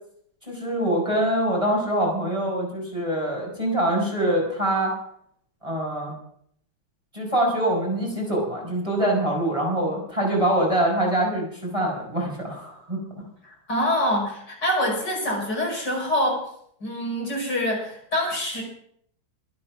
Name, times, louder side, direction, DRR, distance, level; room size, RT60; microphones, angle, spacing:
voice 1, 0.5-4.9 5.6-6.1 7.1-13.0, right 1 dB, 15° right, -2 dB, 5.2 m, -24 dB
voice 2, 13.4-16.4 16.8-18.6, left 1 dB, 55° left, -1 dB, 6.0 m, -25 dB
23.0 x 8.7 x 5.9 m, 0.66 s
omnidirectional pair, 2.1 m